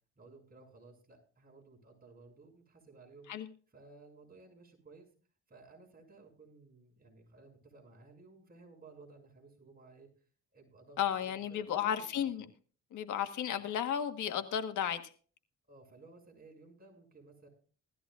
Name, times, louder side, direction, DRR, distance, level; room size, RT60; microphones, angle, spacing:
voice 1, 0.2-3.3 3.7-5.1 5.5-10.1 10.5-12.2 15.7-17.5, right 3 dB, 30° right, 6.2 m, -57 dB
voice 2, 11.0-12.4 12.9-15.1, left 9 dB, 75° left, 1.5 m, -33 dB
18.0 x 14.0 x 2.5 m
cardioid pair, 90°, 30 cm